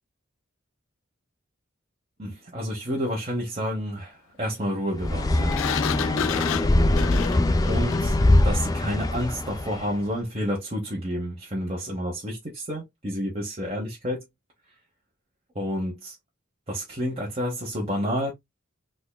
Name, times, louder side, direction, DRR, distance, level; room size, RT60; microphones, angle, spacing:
voice 1, 2.2-5.6 5.9-6.5 7.6-8.2 8.4-14.2 15.5-16.1 16.7-18.3, equal, 30° right, 1.0 m, -30 dB
sound 1, 5.0-9.9, left 1 dB, 20° left, 0.4 m, -22 dB
Sliding door, 5.5-8.3, left 9 dB, 90° left, 0.4 m, -31 dB
3.7 x 3.4 x 2.3 m
head